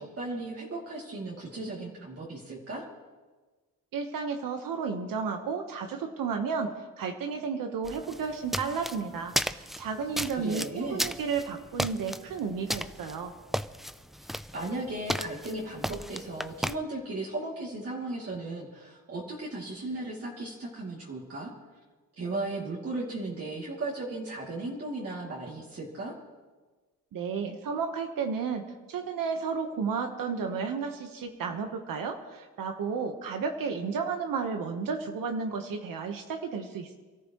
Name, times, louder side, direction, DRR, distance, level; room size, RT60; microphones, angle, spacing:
voice 1, 0.0-2.8 10.3-11.1 14.5-21.5 22.2-26.1, right 2 dB, 45° right, -5 dB, 2.8 m, -36 dB
voice 2, 3.9-13.3 27.1-36.9, right 5 dB, 80° right, 4 dB, 1.3 m, -32 dB
sound 1, 7.8-16.8, equal, ahead, 0.4 m, -35 dB
27.5 x 14.0 x 3.1 m, 1.3 s
cardioid pair, 100°, 33 cm